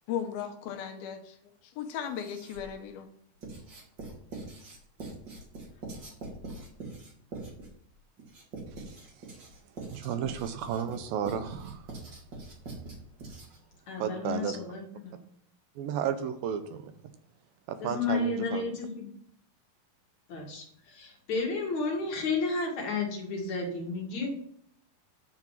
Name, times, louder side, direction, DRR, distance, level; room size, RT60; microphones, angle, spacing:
voice 1, 0.1-1.4 1.6-3.1, left 8 dB, 80° left, 2.7 m, -36 dB
Writing, 2.0-2.8 3.4-13.7, right 2 dB, 35° right, 2.3 m, -43 dB
voice 2, 9.9-11.8 14.0-14.6 15.8-16.9 17.7-18.6, right 8 dB, 80° right, 2.3 m, -33 dB
voice 3, 13.9-15.1 17.8-19.1 20.3-24.3, left 3 dB, 55° left, 2.9 m, -32 dB
9.4 x 4.9 x 7.2 m
omnidirectional pair, 4.3 m